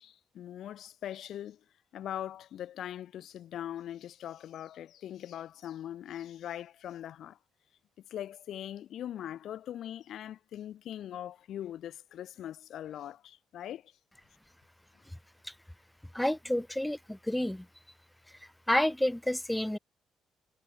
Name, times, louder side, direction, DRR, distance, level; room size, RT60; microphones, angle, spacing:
voice 1, 0.0-1.6 1.9-7.4 8.1-13.9, left 11 dB, 75° left, 2.9 m, -41 dB
voice 2, 16.1-17.7 18.3-19.8, left 1 dB, 5° left, 0.4 m, -30 dB
cardioid pair, 90°, 0 cm